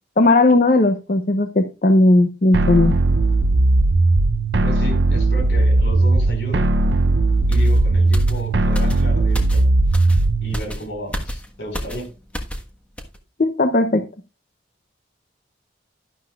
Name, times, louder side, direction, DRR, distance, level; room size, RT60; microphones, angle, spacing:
voice 1, 0.2-3.0 13.4-14.1, left 2 dB, 50° left, 8 dB, 0.7 m, -16 dB
sound 1, 2.5-10.5, right 2 dB, 75° right, 0.6 m, -17 dB
voice 2, 4.6-6.7 7.5-9.6 10.4-12.1, equal, 75° left, 4 dB, 4.8 m, -33 dB
sound 2, 7.5-12.7 13.0-13.2, equal, 5° left, 1.4 m, -32 dB
12.0 x 11.5 x 2.4 m, 0.30 s
head